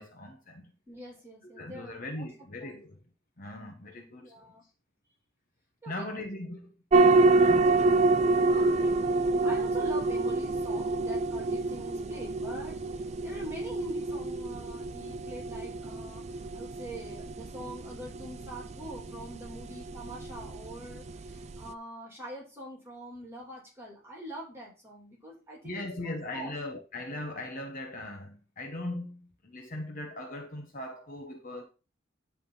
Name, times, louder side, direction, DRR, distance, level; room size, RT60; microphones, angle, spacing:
voice 1, 0.0-0.7 1.4-3.0 3.4-4.4 5.9-7.1 7.4-7.8 25.6-31.6, left 1 dB, 45° left, 1.2 m, -39 dB
voice 2, 0.9-2.3 2.6-2.8 4.2-4.6 5.8-6.0 8.5-8.9 9.4-26.5, right 1 dB, 15° right, 3.1 m, -44 dB
sound 1, 6.9-21.7, right 3 dB, 35° right, 0.5 m, -27 dB
10.5 x 3.7 x 5.5 m
head